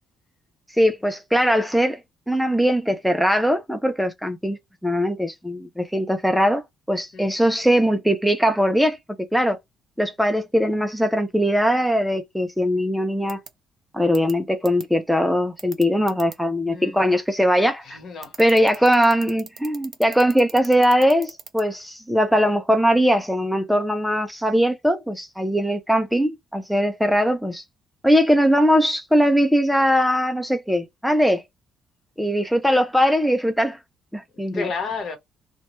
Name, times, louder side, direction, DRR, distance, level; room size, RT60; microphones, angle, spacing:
voice 1, 0.8-2.0 2.3-9.0 9.3-9.6 10.0-13.4 13.9-18.0 18.4-27.6 28.0-31.4 32.2-33.8 34.1-34.7, equal, ahead, 0.4 m, -20 dB
sound 1, 13.3-13.5 14.1-14.3 14.6-14.8 15.6-16.3 18.2-21.6, right 7 dB, 50° right, 0.7 m, -39 dB
voice 2, 16.7-17.0 17.8-18.7 34.5-35.2, left 4 dB, 50° left, 1.0 m, -32 dB
2.9 x 2.2 x 3.0 m
cardioid pair, 120°, 0 cm